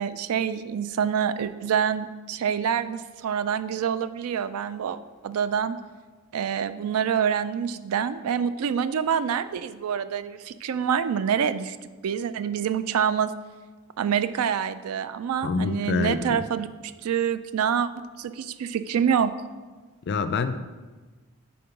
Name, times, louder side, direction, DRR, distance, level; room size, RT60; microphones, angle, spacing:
voice 1, 0.0-5.8 6.3-11.8 12.0-13.3 14.0-17.9 18.2-19.3, right 8 dB, 75° right, 13 dB, 0.3 m, -26 dB
voice 2, 15.4-16.4 20.1-20.6, left 5 dB, 50° left, 10 dB, 0.3 m, -26 dB
5.4 x 3.7 x 5.7 m, 1.3 s
head